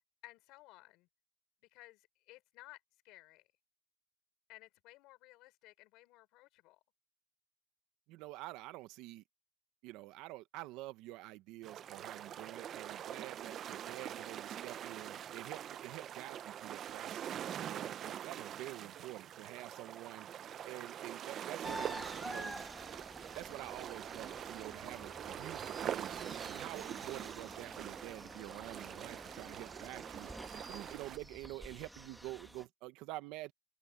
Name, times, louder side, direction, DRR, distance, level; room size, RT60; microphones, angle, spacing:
voice 1, 0.2-1.1 1.7-3.5 4.5-6.8 17.8-18.0 30.7-31.0, left 19 dB, 85° left, 4.0 m, -58 dB
voice 2, 8.1-9.2 9.8-17.3 17.5-20.3 20.7-22.6 23.3-30.3 30.7-33.5, right 18 dB, 85° right, 1.1 m, -48 dB
sound 1, 11.6-31.2, right 10 dB, 45° right, 0.6 m, -44 dB
sound 2, 21.6-32.6, right 1 dB, 5° right, 1.9 m, -49 dB
cardioid pair, 135°, 0 cm